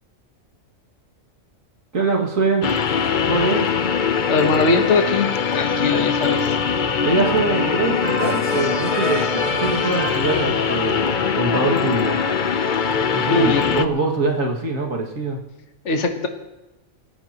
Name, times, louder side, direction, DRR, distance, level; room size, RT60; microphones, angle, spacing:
voice 1, 1.9-2.7 3.3-3.7 7.0-12.2 13.1-15.4, right 3 dB, 85° right, 0 dB, 2.6 m, -23 dB
sound 1, 2.6-13.9, left 6 dB, 45° left, 0.7 m, -22 dB
voice 2, 4.3-6.6 13.3-13.9 15.8-16.3, left 3 dB, 65° left, 4 dB, 1.5 m, -21 dB
Trumpet, 5.8-6.0 6.3-12.5, right 1 dB, 40° right, 4.5 m, -32 dB
29.5 x 14.5 x 3.0 m, 1.0 s
omnidirectional pair, 1.3 m